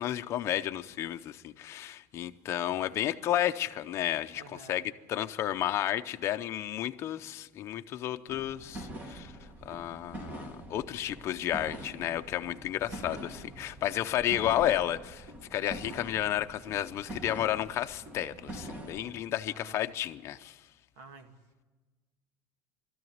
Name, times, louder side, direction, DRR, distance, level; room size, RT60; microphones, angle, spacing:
voice 1, 0.0-9.3 9.7-20.6, left 12 dB, 35° left, 0.7 m, -32 dB
voice 2, 4.3-4.9 10.9-11.0 12.9-13.5 19.4-19.8 21.0-21.3, right 3 dB, 90° right, 2.2 m, -52 dB
sound 1, 8.3-19.2, right 1 dB, 20° right, 1.3 m, -44 dB
20.5 x 13.5 x 9.4 m
cardioid pair, 170°, 8 cm